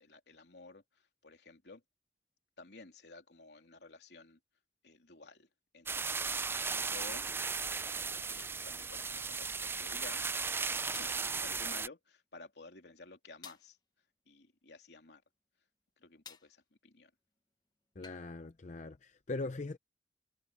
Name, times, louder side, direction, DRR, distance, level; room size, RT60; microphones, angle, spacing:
voice 1, 0.0-1.8 2.6-4.4 4.8-5.5 5.7-6.3 6.8-7.2 8.0-10.4 10.7-13.8 14.3-15.2 16.0-17.1, left 3 dB, 75° left, 3.1 m, -54 dB
sound 1, 5.9-11.9, right 4 dB, 15° right, 0.3 m, -36 dB
sound 2, 10.9-11.3 13.4-13.7 16.3-16.6 18.0-18.3, left 6 dB, 25° left, 1.1 m, -52 dB
voice 2, 18.0-19.8, left 2 dB, 45° left, 0.6 m, -41 dB
head